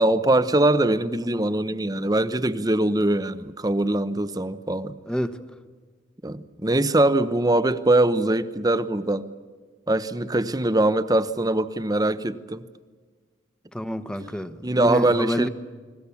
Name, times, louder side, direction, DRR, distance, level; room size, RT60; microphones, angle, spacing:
voice 1, 0.0-4.9 6.2-9.3 9.9-12.6 14.6-15.5, right 1 dB, 20° right, 0.9 m, -22 dB
voice 2, 5.1-5.4 13.7-15.5, equal, 5° left, 1.1 m, -28 dB
30.0 x 21.5 x 7.1 m
head